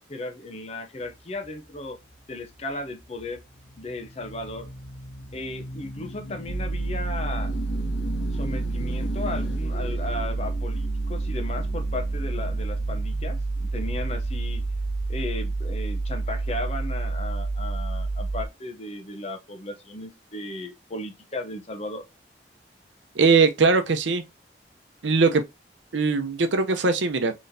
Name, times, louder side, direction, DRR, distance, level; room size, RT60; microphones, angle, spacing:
voice 1, 0.1-2.0 2.3-3.4 3.8-4.7 5.3-7.5 8.3-14.6 15.1-22.1, left 2 dB, 35° left, 0.6 m, -35 dB
sound 1, 1.0-15.2, left 1 dB, 70° left, 0.9 m, -40 dB
sound 2, 6.5-18.5, right 3 dB, 35° right, 0.4 m, -28 dB
voice 2, 23.2-24.2 25.0-25.4 25.9-27.3, right 4 dB, 85° right, 0.7 m, -20 dB
4.0 x 3.1 x 2.6 m
head